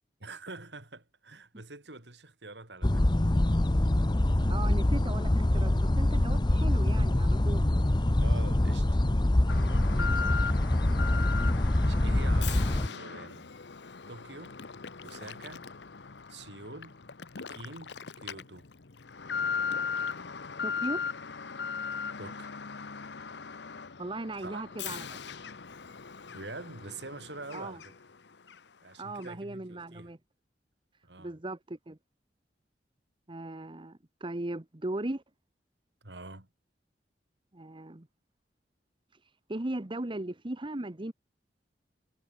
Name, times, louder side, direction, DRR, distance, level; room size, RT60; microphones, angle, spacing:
voice 1, 0.2-3.0 8.2-8.9 9.8-10.4 11.2-13.5 14.1-14.6 15.0-15.7 16.3-17.0 17.4-18.7 22.2-22.6 24.4-24.6 26.3-27.9 28.8-30.1 31.0-31.3 36.0-36.5, right 2 dB, 75° right, 4.5 m, -45 dB
sound 1, 2.8-12.9, left 1 dB, 25° left, 0.8 m, -25 dB
voice 2, 4.5-7.6 9.9-10.1 20.6-21.0 24.0-25.2 27.5-27.8 29.0-30.2 31.2-32.0 33.3-35.2 37.5-38.1 39.5-41.1, right 1 dB, 30° right, 1.1 m, -37 dB
Alarm, 9.5-28.2 28.5-28.6 29.2-29.3, left 6 dB, 75° left, 1.0 m, -38 dB
head